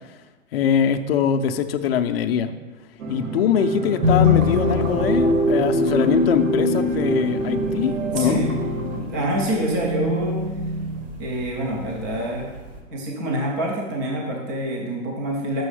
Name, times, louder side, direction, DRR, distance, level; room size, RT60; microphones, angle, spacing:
voice 1, 0.5-2.5 3.1-8.4, left 8 dB, 45° left, 6 dB, 0.6 m, -22 dB
sound 1, 3.0-9.0, right 2 dB, 85° right, 1.5 m, -28 dB
sound 2, 4.0-12.8, left 2 dB, 60° right, 2.2 m, -24 dB
voice 2, 8.1-8.5 9.0-10.4 11.2-12.5 12.9-15.6, right 1 dB, 15° right, -1 dB, 0.4 m, -26 dB
6.2 x 5.5 x 4.9 m, 1.2 s
hypercardioid pair, 150°, 40 cm